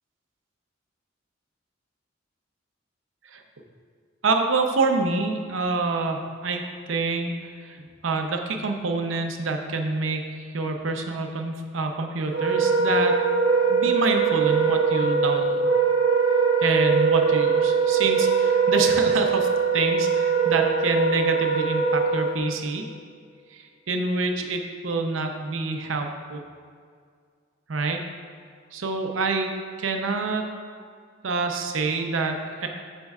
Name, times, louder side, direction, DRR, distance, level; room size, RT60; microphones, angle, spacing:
voice 1, 4.2-6.6 6.9-7.3 7.6-13.1 13.7-15.7 16.6-19.5 19.7-22.8 23.5-26.4 27.7-28.0 28.7-29.5 29.8-30.4 31.2-32.7, right 3 dB, 85° right, 4 dB, 0.7 m, -27 dB
Wind instrument woodwind instrument, 12.3-22.4, right 5 dB, 65° right, 1.2 m, -21 dB
11.5 x 4.4 x 2.4 m, 2.1 s
head